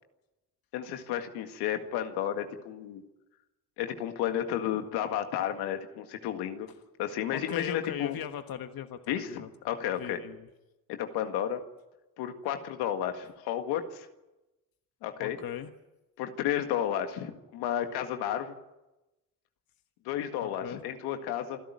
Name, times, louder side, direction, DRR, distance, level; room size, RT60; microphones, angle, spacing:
voice 1, 0.7-3.0 3.8-6.7 7.0-8.2 9.1-10.2 10.9-11.6 12.2-14.1 15.0-15.4 16.2-18.5 20.1-21.6, left 10 dB, 85° left, 6 dB, 1.9 m, -32 dB
voice 2, 7.3-9.5 10.0-10.5 15.2-15.7 20.4-20.8, left 10 dB, 65° left, 8 dB, 1.4 m, -38 dB
27.5 x 11.5 x 9.9 m, 1.0 s
supercardioid pair, 55°, 38 cm